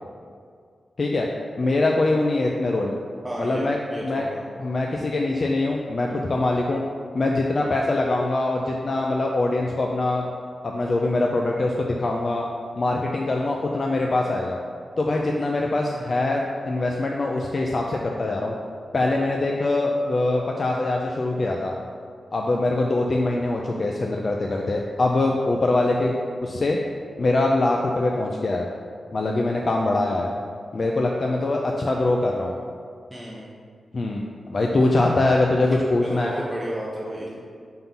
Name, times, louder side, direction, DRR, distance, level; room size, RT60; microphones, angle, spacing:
voice 1, 1.6-3.0 3.4-3.8 4.0-4.3 4.6-6.8 7.1-10.3 10.6-12.5 12.8-14.6 15.0-18.5 18.9-21.8 22.3-26.1 26.4-26.8 27.2-28.7 29.1-30.3 30.7-32.5 33.9-34.2 34.5-36.3, left 2 dB, 40° left, 0 dB, 0.4 m, -23 dB
voice 2, 3.2-4.4 6.1-6.2 33.1-33.5 36.0-37.4, right 1 dB, 10° right, -5 dB, 0.8 m, -32 dB
5.4 x 3.8 x 5.8 m, 2.1 s
wide cardioid pair, 125°, 0 cm